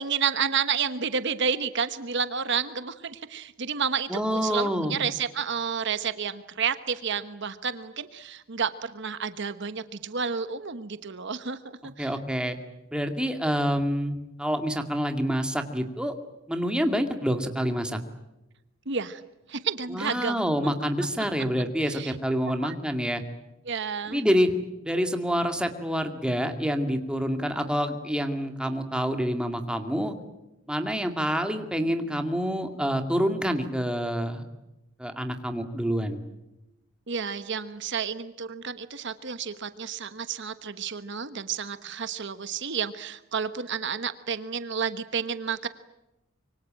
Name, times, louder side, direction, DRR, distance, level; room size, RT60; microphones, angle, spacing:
voice 1, 0.0-11.6 12.0-12.2 18.9-19.2 19.5-20.5 21.8-22.1 22.6-22.7 23.7-24.2 37.1-45.7, right 6 dB, 60° right, 11 dB, 1.2 m, -30 dB
voice 2, 4.1-5.0 12.0-12.6 12.9-16.1 16.5-18.0 19.9-23.2 24.1-24.5 24.8-30.1 30.7-34.4 35.0-36.2, equal, 5° right, 6 dB, 2.2 m, -27 dB
25.5 x 24.0 x 8.9 m, 0.96 s
head